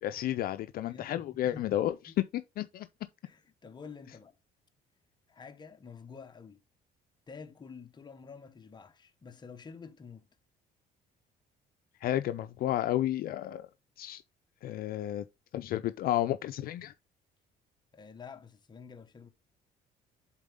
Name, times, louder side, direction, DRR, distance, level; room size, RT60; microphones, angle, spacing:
voice 1, 0.0-2.9 12.0-13.7 14.0-14.2 14.6-15.3 15.5-16.9, left 13 dB, 60° left, 0.5 m, -32 dB
voice 2, 0.8-2.1 3.2-4.4 5.3-6.6 7.3-10.3 17.9-19.3, left 5 dB, 25° left, 0.9 m, -49 dB
7.4 x 4.0 x 3.5 m
cardioid pair, 110°, 17 cm